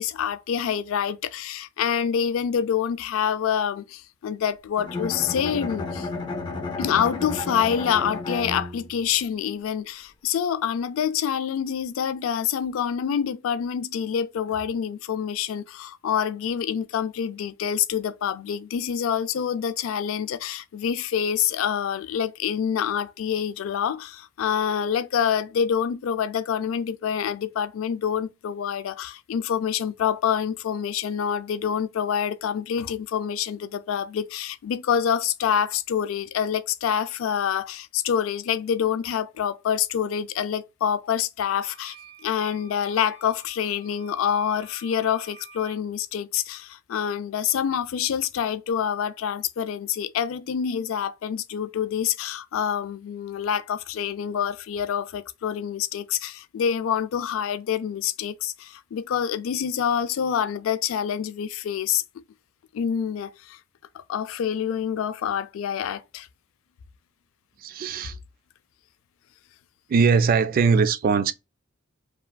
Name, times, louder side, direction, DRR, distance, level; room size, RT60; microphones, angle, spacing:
voice 1, 0.0-6.1 6.8-42.0 42.2-62.0 62.7-63.6 63.9-66.3, left 8 dB, 75° left, 0.3 m, -26 dB
Bowed string instrument, 4.8-9.1, left 3 dB, 25° left, 0.6 m, -32 dB
sound 1, 41.6-45.8, right 2 dB, 65° right, 1.2 m, -49 dB
voice 2, 67.6-68.2 69.9-71.3, right 5 dB, 45° right, 0.3 m, -21 dB
2.9 x 2.4 x 2.2 m
head